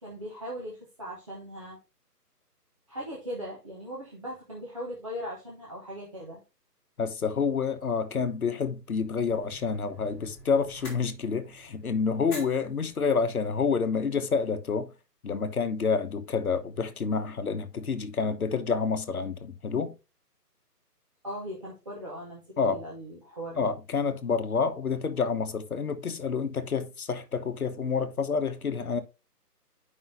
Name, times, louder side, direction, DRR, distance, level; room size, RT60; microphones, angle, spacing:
voice 1, 0.0-1.8 2.9-6.4 21.2-23.7, equal, 20° right, 1.1 m, -39 dB
voice 2, 7.0-14.9 15.2-19.9 22.6-22.8 23.6-29.0, left 5 dB, 60° left, 1.1 m, -28 dB
sound 1, 8.9-14.3, left 1 dB, 5° left, 1.6 m, -49 dB
9.8 x 5.5 x 2.7 m
figure-of-eight pair, 165°, 48 cm